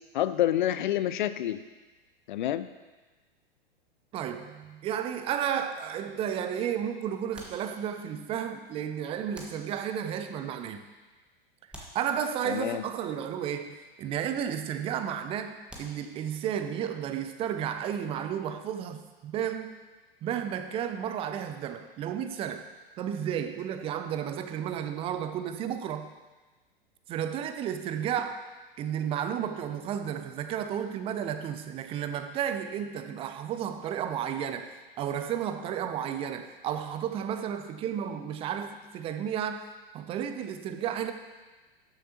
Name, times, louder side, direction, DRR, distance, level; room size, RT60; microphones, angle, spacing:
voice 1, 0.1-1.6 2.3-2.7 12.5-12.8, left 12 dB, 55° left, 13 dB, 0.5 m, -28 dB
voice 2, 4.1-10.9 11.9-19.8 20.2-22.7 23.0-26.1 27.1-28.4 28.8-39.7 39.9-41.1, right 9 dB, 20° right, 9 dB, 0.5 m, -32 dB
sound 1, 7.3-8.3 9.3-10.2 11.7-12.8 15.7-16.5, equal, 5° right, 1.3 m, -50 dB
12.5 x 6.7 x 2.8 m, 1.2 s
figure-of-eight pair, 95°, 30 cm